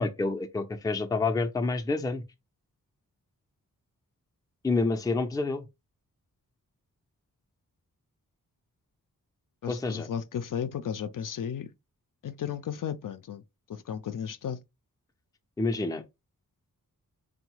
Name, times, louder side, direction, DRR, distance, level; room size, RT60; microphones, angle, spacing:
voice 1, 0.0-2.2 4.6-5.7 9.7-10.1 15.6-16.0, left 3 dB, 10° left, 0.5 m, -28 dB
voice 2, 9.6-11.7 12.2-13.4 13.7-14.6, left 8 dB, 65° left, 0.5 m, -34 dB
3.9 x 2.1 x 4.5 m
wide cardioid pair, 120°, 35 cm